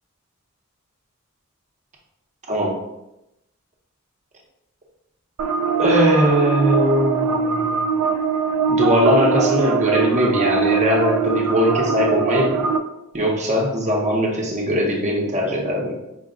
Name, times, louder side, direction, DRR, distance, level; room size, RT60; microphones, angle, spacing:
voice 1, 2.5-2.8 5.6-7.8 8.7-12.7 13.1-15.9, equal, 35° right, -1 dB, 0.8 m, -20 dB
sound 1, 5.4-12.8, right 6 dB, 85° right, 0.4 m, -21 dB
5.1 x 2.2 x 3.7 m, 0.89 s
head